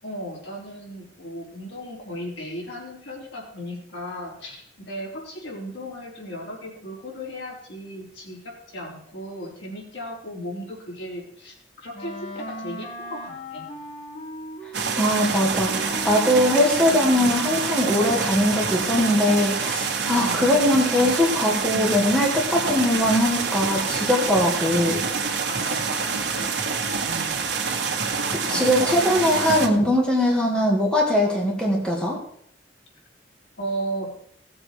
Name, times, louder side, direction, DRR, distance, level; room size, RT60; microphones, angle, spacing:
voice 1, 0.0-13.6 20.0-20.4 25.5-27.3 28.4-28.6 33.6-34.1, equal, 75° left, -3 dB, 4.4 m, -36 dB
Wind instrument woodwind instrument, 11.9-19.1, left 1 dB, 35° left, 1.7 m, -37 dB
sound 1, 14.7-29.7, right 5 dB, 65° right, 1.7 m, -26 dB
voice 2, 14.9-25.0 28.5-32.2, left 1 dB, 5° left, -2 dB, 2.4 m, -21 dB
17.5 x 7.5 x 4.7 m, 0.68 s
head